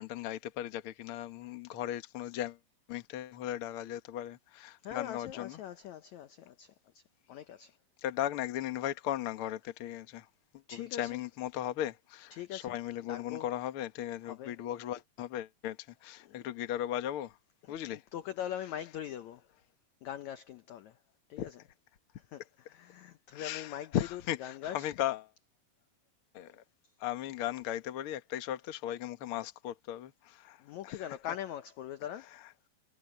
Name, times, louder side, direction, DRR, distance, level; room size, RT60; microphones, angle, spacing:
voice 1, 0.0-2.6 2.9-5.6 8.0-10.3 10.7-15.8 16.0-17.3 17.7-18.0 21.4-21.5 23.3-25.3 26.3-26.6 27.0-30.6 30.8-31.0, left 12 dB, 55° left, 1.5 m, -37 dB
voice 2, 4.8-7.0 7.3-7.7 10.7-11.2 12.3-12.8 13.1-13.5 14.2-14.5 16.2-16.5 17.6-17.7 18.1-19.4 20.0-21.0 21.3-21.6 22.3-24.9 30.6-32.3, left 10 dB, 70° left, 1.8 m, -42 dB
omnidirectional pair, 4.2 m